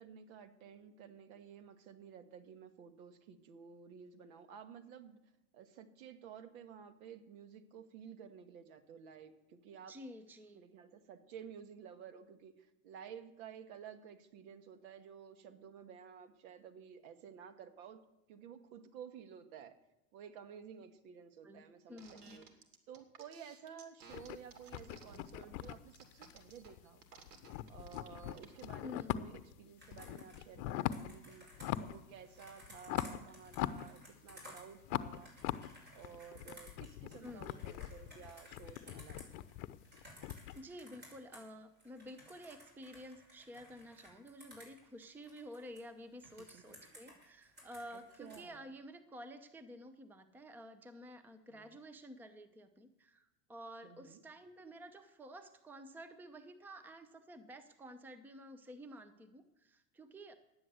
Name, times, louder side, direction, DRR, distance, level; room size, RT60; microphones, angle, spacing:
voice 1, 0.0-5.2 5.5-10.0 10.5-18.0 18.3-19.8 20.1-22.5 22.9-27.0 27.7-31.5 31.7-35.3 35.9-39.3 46.5-46.9 47.9-48.7 51.5-51.8 53.8-54.2, right 7 dB, 60° right, 9 dB, 1.7 m, -53 dB
voice 2, 9.9-10.7 21.4-21.6 21.9-22.4 28.8-29.2 37.2-37.5 40.5-60.3, equal, 5° right, 10 dB, 0.7 m, -51 dB
sound 1, 22.0-28.7, right 5 dB, 80° right, 2.6 m, -57 dB
sound 2, 24.1-27.0 27.3-29.5 29.9-31.2 31.5-32.1 32.4-34.4 34.8-40.6, left 14 dB, 50° left, 0.9 m, -41 dB
Computer keyboard, 29.8-41.5 41.8-45.8 46.2-48.4, equal, 20° right, 6.1 m, -57 dB
11.5 x 9.6 x 8.0 m, 0.91 s
hypercardioid pair, 120°, 47 cm